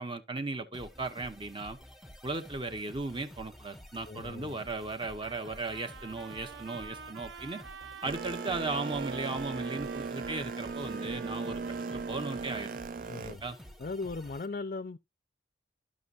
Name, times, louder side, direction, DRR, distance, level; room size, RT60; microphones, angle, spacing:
voice 1, 0.0-1.8 2.2-7.6 8.0-11.6 11.9-12.8 13.2-13.6, right 3 dB, 25° right, 0.9 m, -36 dB
sound 1, 0.7-14.5, equal, ahead, 1.0 m, -51 dB
voice 2, 4.1-4.6 13.1-13.4 13.8-15.0, left 3 dB, 45° left, 0.5 m, -38 dB
Trumpet, 5.2-13.0, right 6 dB, 75° right, 0.8 m, -48 dB
Boat Water vehicle, 8.0-13.4, right 4 dB, 45° right, 0.3 m, -38 dB
12.5 x 6.1 x 2.5 m
head